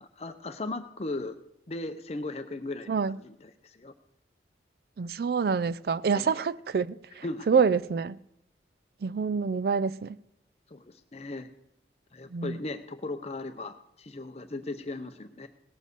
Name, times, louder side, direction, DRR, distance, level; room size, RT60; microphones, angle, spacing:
voice 1, 0.0-1.4 1.7-3.9 6.1-6.4 7.2-7.5 10.7-11.5 12.1-15.5, left 2 dB, 35° left, 0.6 m, -37 dB
voice 2, 5.0-8.2 9.0-10.2 12.3-12.6, right 5 dB, 60° right, 0.4 m, -27 dB
18.0 x 7.2 x 6.7 m
head